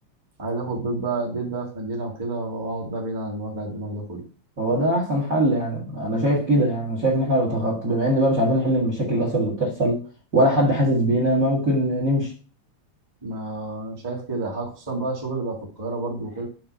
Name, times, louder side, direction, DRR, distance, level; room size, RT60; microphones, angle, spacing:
voice 1, 0.4-4.2 13.2-16.5, right 2 dB, 10° right, 1.3 m, -30 dB
voice 2, 4.6-10.0 10.3-12.3, right 1 dB, 35° right, 1.6 m, -21 dB
6.8 x 3.2 x 6.1 m
omnidirectional pair, 3.4 m